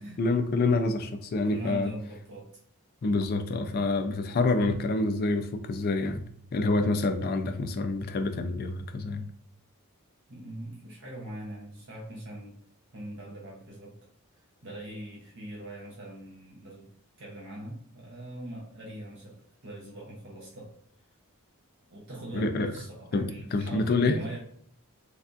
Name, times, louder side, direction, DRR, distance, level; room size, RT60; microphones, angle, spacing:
voice 1, 0.2-1.9 3.0-6.2 6.5-9.3 22.3-22.7 23.1-24.2, left 3 dB, 45° left, 0.3 m, -27 dB
voice 2, 1.4-2.5 10.3-12.6 12.9-13.9 14.6-16.9 17.2-20.7 21.9-24.4, right 1 dB, 55° right, 0.7 m, -41 dB
3.3 x 2.3 x 2.5 m
head